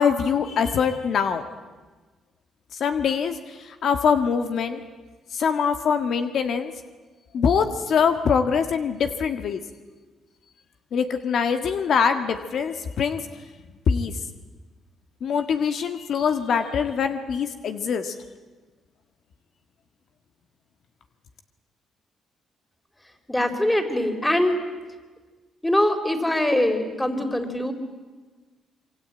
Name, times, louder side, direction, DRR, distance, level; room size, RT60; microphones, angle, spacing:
voice 1, 0.0-1.4 2.7-4.8 5.3-6.7 7.3-9.6 10.9-13.3 13.9-14.1 15.2-18.1, left 6 dB, 65° left, 7 dB, 1.6 m, -23 dB
voice 2, 23.3-24.6 25.6-27.7, left 1 dB, 10° left, 6 dB, 4.0 m, -23 dB
26.5 x 24.0 x 8.9 m, 1.3 s
cardioid pair, 90°, 0 cm